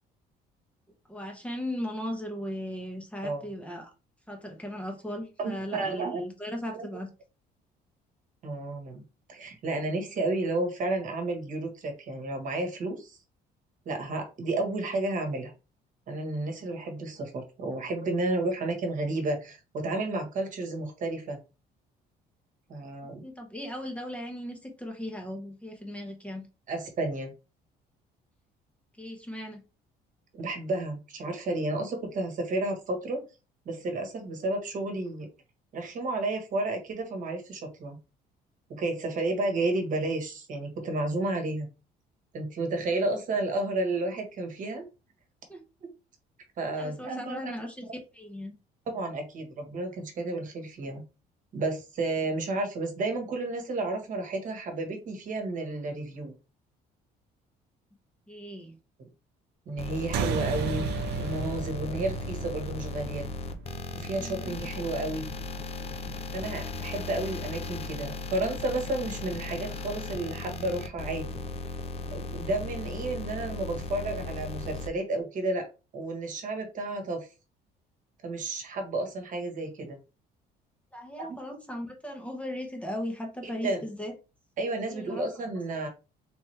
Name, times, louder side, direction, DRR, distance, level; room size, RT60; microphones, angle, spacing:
voice 1, 1.1-3.9 4.3-7.1 23.2-26.5 29.0-29.6 45.5-45.6 46.8-47.9 48.1-48.5 58.3-58.7 64.2-64.4 80.9-84.1 84.9-85.2, equal, 5° left, 2 dB, 0.9 m, -37 dB
voice 2, 5.4-6.2 6.7-6.9 8.4-9.0 9.3-13.2 13.8-15.5 16.1-21.4 22.7-23.2 26.7-27.3 30.3-33.2 33.6-35.3 35.7-38.0 38.7-41.7 42.3-44.8 45.8-45.9 46.6-47.5 48.9-51.0 51.5-56.3 59.7-60.9 61.2-63.3 64.0-65.3 66.3-71.4 72.1-75.7 75.9-77.3 78.2-80.0 81.2-81.3 83.6-83.8 84.6-85.9, right 2 dB, 50° right, 5 dB, 1.3 m, -32 dB
sound 1, 59.8-74.9, left 3 dB, 35° left, 0.6 m, -37 dB
sound 2, 60.1-65.0, right 6 dB, 80° right, 0.6 m, -34 dB
3.5 x 2.9 x 3.2 m, 0.30 s
cardioid pair, 110°, 17 cm